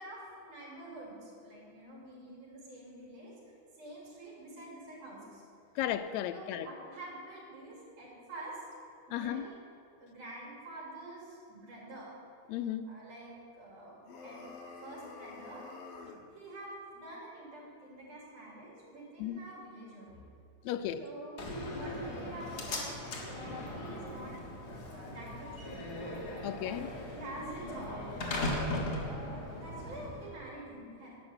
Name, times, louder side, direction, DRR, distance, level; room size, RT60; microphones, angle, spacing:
voice 1, 0.0-3.4 3.8-5.4 6.3-8.6 9.1-9.6 10.0-12.1 12.8-14.4 14.8-15.6 16.3-20.2 21.0-21.4 21.7-24.4 24.8-25.8 26.6-26.8 27.1-28.0 29.1-31.1, right 1 dB, 90° right, -5 dB, 4.6 m, -47 dB
voice 2, 5.8-6.7 9.1-9.5 12.5-12.9 19.2-19.4 20.6-21.0 26.4-26.9, left 11 dB, 80° left, 9 dB, 1.7 m, -34 dB
sound 1, 14.0-16.3, left 4 dB, 60° left, 1.9 m, -48 dB
Slam, 21.4-30.4, left 1 dB, 40° left, 1.6 m, -38 dB
11.5 x 6.0 x 8.7 m, 2.5 s
omnidirectional pair, 3.4 m